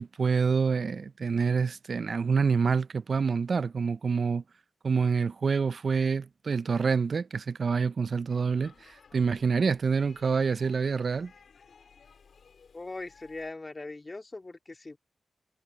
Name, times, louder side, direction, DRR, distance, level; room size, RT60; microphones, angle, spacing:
voice 1, 0.0-4.4 4.8-11.3, right 5 dB, 60° right, 0.4 m, -27 dB
Speech / Shout / Subway metro underground, 8.3-13.5, left 6 dB, 75° left, 3.7 m, -58 dB
voice 2, 12.7-15.0, left 2 dB, 30° left, 2.6 m, -40 dB
wide cardioid pair, 105°, 0 cm